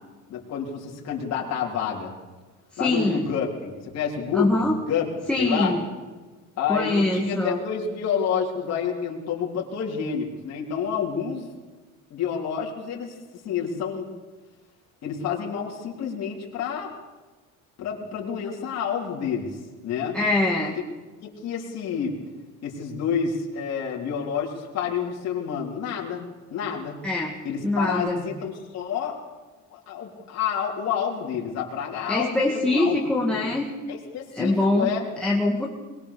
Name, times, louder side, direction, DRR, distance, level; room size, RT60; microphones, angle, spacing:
voice 1, 0.3-2.1 2.8-5.1 5.4-5.7 6.6-11.5 12.1-14.1 15.0-16.9 17.8-20.2 21.2-22.2 22.6-27.0 27.4-29.2 29.7-33.0 33.3-33.5 33.9-35.1, left 7 dB, 50° left, -3 dB, 3.7 m, -29 dB
voice 2, 2.8-3.2 4.3-4.7 5.3-5.8 6.7-7.6 20.1-20.7 27.0-27.3 27.6-28.2 32.1-33.7 34.3-34.9 35.2-35.7, left 2 dB, 5° left, 0 dB, 2.0 m, -23 dB
22.5 x 20.5 x 6.9 m, 1.3 s
cardioid pair, 160°, 33 cm